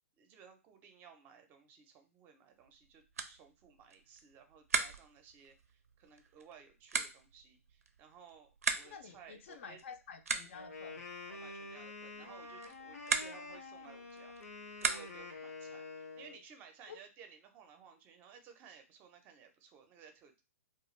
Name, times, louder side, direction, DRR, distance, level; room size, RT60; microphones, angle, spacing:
voice 1, 0.2-9.8 11.3-14.4 14.8-20.4, right 7 dB, 25° right, 6 dB, 0.5 m, -58 dB
sound 1, 2.6-15.4, right 5 dB, 80° right, 0.4 m, -41 dB
voice 2, 8.8-11.0 16.9-17.0, left 6 dB, 55° left, 8 dB, 0.5 m, -50 dB
Wind instrument woodwind instrument, 10.5-16.4, left 3 dB, 90° left, 0.7 m, -47 dB
2.3 x 2.3 x 3.1 m, 0.30 s
hypercardioid pair, 135°, 8 cm